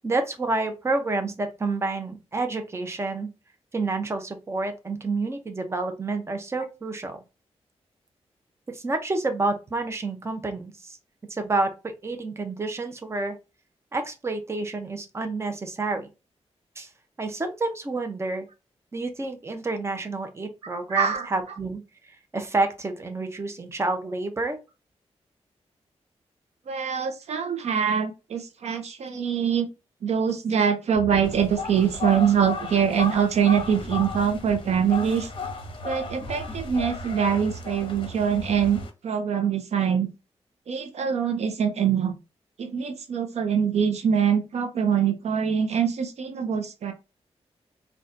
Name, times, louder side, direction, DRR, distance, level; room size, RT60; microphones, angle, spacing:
voice 1, 0.0-3.3 3.7-7.2 8.7-11.0 11.3-13.3 13.9-16.1 16.8-16.9 17.2-18.5 18.9-21.8 22.3-24.6, right 3 dB, 25° right, 0.6 m, -29 dB
voice 2, 20.7-21.3 26.7-29.7 30.0-35.3 35.8-40.1 40.7-42.2 42.6-46.9, right 7 dB, 75° right, 0.5 m, -24 dB
sound 1, 30.9-38.8, right 1 dB, 25° left, 1.9 m, -40 dB
sound 2, 31.2-38.9, left 4 dB, 50° left, 0.6 m, -36 dB
4.0 x 2.3 x 2.5 m
wide cardioid pair, 120°, 11 cm